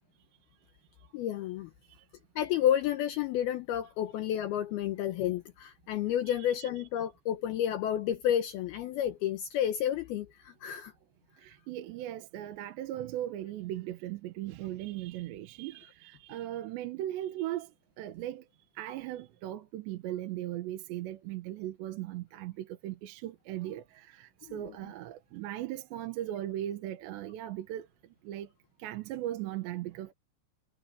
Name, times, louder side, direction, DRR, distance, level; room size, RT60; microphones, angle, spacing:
voice 1, 1.1-1.7 2.4-10.9 24.5-24.6, left 10 dB, 85° left, 2.2 m, -30 dB
voice 2, 6.3-6.7 11.4-17.7 18.0-18.4 18.8-27.9 28.2-28.5 28.8-30.1, right 13 dB, 70° right, 3.1 m, -38 dB
omnidirectional pair, 5.7 m